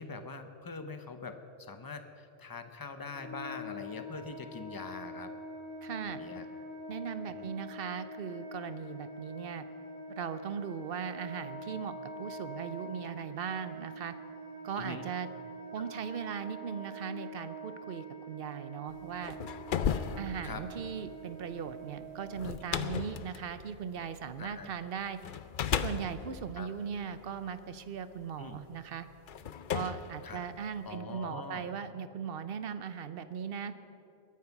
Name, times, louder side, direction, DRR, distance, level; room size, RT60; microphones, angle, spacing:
voice 1, 0.0-1.4 1.7-5.3 6.0-6.4 7.3-7.5 14.8-15.1 20.4-20.6 24.4-24.7 26.6-26.7 28.4-28.6 30.2-30.4 30.8-31.6, left 4 dB, 20° left, 8 dB, 0.8 m, -43 dB
Wind instrument woodwind instrument, 3.1-22.6, right 1 dB, 75° right, 4.5 m, -45 dB
voice 2, 5.8-6.2 6.9-9.7 10.1-14.2 14.6-15.3 15.7-19.4 20.2-25.2 25.8-29.1 29.7-33.7, right 7 dB, 55° right, 12 dB, 0.9 m, -39 dB
sound 1, 19.0-24.6 25.2-27.7 28.5-28.6 29.3-31.0, left 8 dB, 55° left, 0.6 m, -36 dB
21.0 x 9.4 x 6.0 m, 2.8 s
omnidirectional pair, 1.2 m